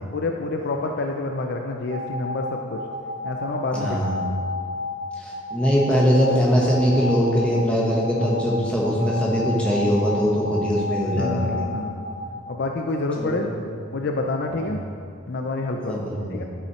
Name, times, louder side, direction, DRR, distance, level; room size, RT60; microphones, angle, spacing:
voice 1, 0.1-2.8 3.2-4.0 11.1-12.0 12.5-13.5 13.9-14.8 15.3-16.4, left 2 dB, 50° left, 3 dB, 0.4 m, -28 dB
sound 1, 1.9-12.3, left 2 dB, 55° right, 1.4 m, -31 dB
voice 2, 3.7-4.2 5.2-11.7 13.1-13.6 14.6-14.7 15.8-16.4, equal, 5° left, -5 dB, 1.2 m, -22 dB
10.0 x 5.5 x 3.1 m, 2.4 s
head